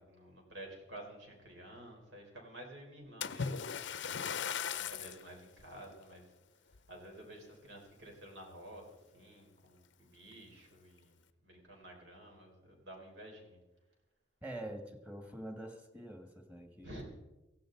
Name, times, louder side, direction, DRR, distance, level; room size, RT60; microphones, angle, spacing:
voice 1, 0.0-4.2 4.7-6.2 6.9-11.2 11.4-13.6 16.8-17.0, right 1 dB, 75° right, 1 dB, 4.0 m, -51 dB
Splash splatter, 3.2-5.2 5.9-6.1 6.7-6.8, left 7 dB, 70° left, 0.6 m, -38 dB
voice 2, 14.4-16.9, right 1 dB, 10° right, 5 dB, 1.7 m, -45 dB
17.0 x 15.5 x 3.9 m, 1.0 s
head